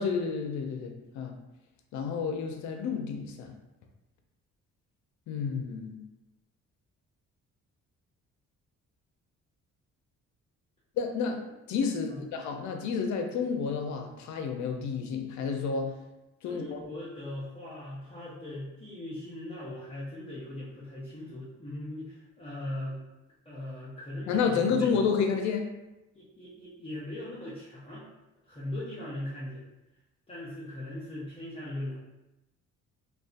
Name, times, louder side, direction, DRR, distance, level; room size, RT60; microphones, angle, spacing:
voice 1, 0.0-1.3 1.9-3.5 5.3-6.0 11.0-11.4 11.7-15.9 16.4-16.8 24.3-25.7, left 5 dB, 70° left, 4 dB, 0.5 m, -30 dB
voice 2, 16.4-23.0 23.5-24.9 26.1-28.1 28.5-29.6 30.3-32.0, left 1 dB, 20° left, -9 dB, 0.6 m, -39 dB
2.6 x 2.2 x 2.4 m, 0.96 s
cardioid pair, 90°, 30 cm